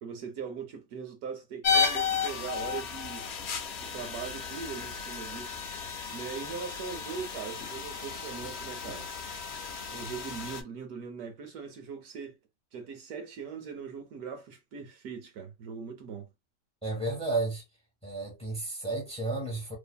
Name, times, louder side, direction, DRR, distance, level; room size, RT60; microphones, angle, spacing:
voice 1, 0.0-3.3 3.8-5.6 6.1-9.1 9.9-12.4 12.7-16.3, right 6 dB, 75° right, 1.1 m, -40 dB
sound 1, 1.6-10.6, left 5 dB, 70° left, 0.6 m, -33 dB
voice 2, 16.8-17.6 18.0-19.8, right 2 dB, 5° left, 1.1 m, -32 dB
2.6 x 2.6 x 2.2 m
omnidirectional pair, 1.7 m